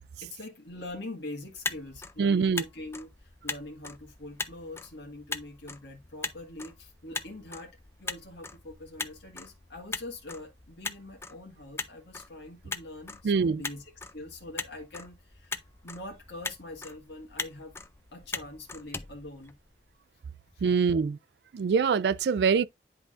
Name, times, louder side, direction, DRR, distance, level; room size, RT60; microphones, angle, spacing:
voice 1, 0.2-17.8 18.1-19.6 20.5-20.7, left 2 dB, 75° left, 1.8 m, -44 dB
Motor vehicle (road), 1.4-20.0, left 4 dB, 15° left, 0.4 m, -41 dB
voice 2, 2.2-2.6 13.2-13.6 20.6-21.2 21.5-22.7, right 5 dB, 65° right, 0.3 m, -24 dB
10.5 x 3.7 x 2.5 m
head